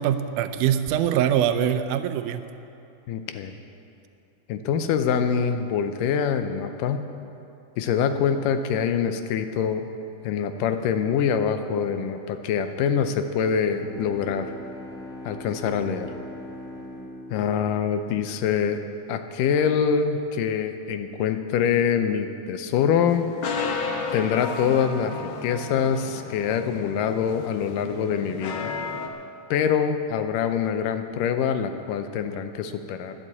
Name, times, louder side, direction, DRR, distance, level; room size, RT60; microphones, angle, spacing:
voice 1, 0.0-2.4, right 10 dB, 80° right, 9 dB, 2.1 m, -23 dB
voice 2, 3.1-3.5 4.5-7.1 7.8-9.9 10.2-14.5 15.3-16.1 17.3-18.8 19.1-23.3 24.1-28.7 29.5-33.2, left 7 dB, 90° left, 8 dB, 2.4 m, -25 dB
Bowed string instrument, 13.6-18.7, left 1 dB, 15° right, 2.6 m, -41 dB
sound 1, 23.1-29.1, left 4 dB, 65° left, 1.3 m, -33 dB
12.0 x 11.0 x 8.5 m, 2.7 s
omnidirectional pair, 3.7 m